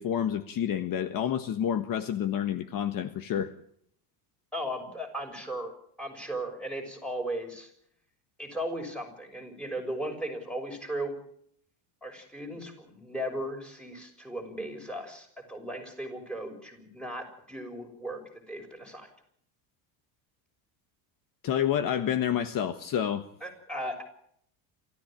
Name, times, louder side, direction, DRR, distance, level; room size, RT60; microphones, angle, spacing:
voice 1, 0.0-3.5 21.4-23.3, left 9 dB, 45° left, 10 dB, 1.5 m, -29 dB
voice 2, 4.5-5.7 6.0-7.7 8.4-11.1 12.0-18.2 18.5-19.1 23.4-24.0, right 1 dB, ahead, 3 dB, 6.3 m, -36 dB
28.5 x 14.5 x 8.9 m, 0.68 s
cardioid pair, 130°, 45 cm